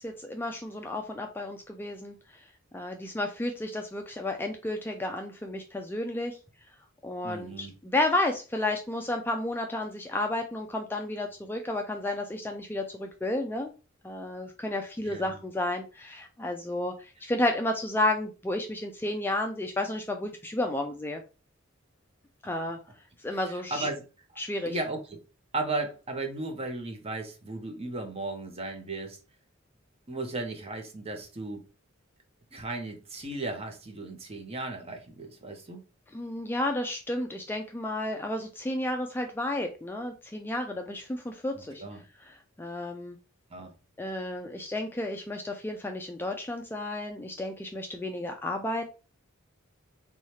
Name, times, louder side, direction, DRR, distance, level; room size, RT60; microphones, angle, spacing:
voice 1, 0.0-2.2 2.7-6.4 7.0-13.7 14.0-21.2 22.4-22.8 23.2-23.9 24.4-24.8 36.1-41.8 42.6-43.2 44.0-48.9, left 1 dB, 10° left, 0.3 m, -32 dB
voice 2, 7.2-7.7 15.0-15.4 23.5-24.0 24.7-25.2 25.5-29.2 30.1-31.6 32.5-35.8 41.6-42.0 43.5-43.7, right 2 dB, 30° right, 0.7 m, -35 dB
3.1 x 2.3 x 4.1 m
head